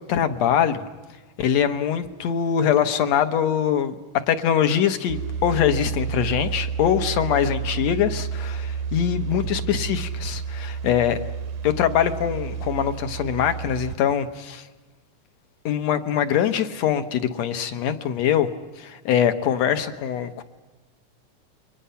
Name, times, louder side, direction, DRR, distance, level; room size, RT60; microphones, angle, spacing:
voice 1, 0.1-0.8 1.4-4.0 4.3-11.2 11.6-14.6 15.7-18.5 18.8-20.4, left 9 dB, 65° left, 9 dB, 2.0 m, -23 dB
sound 1, 5.1-14.0, right 6 dB, 75° right, 2.3 m, -30 dB
29.5 x 23.0 x 5.6 m, 1.2 s
omnidirectional pair, 3.7 m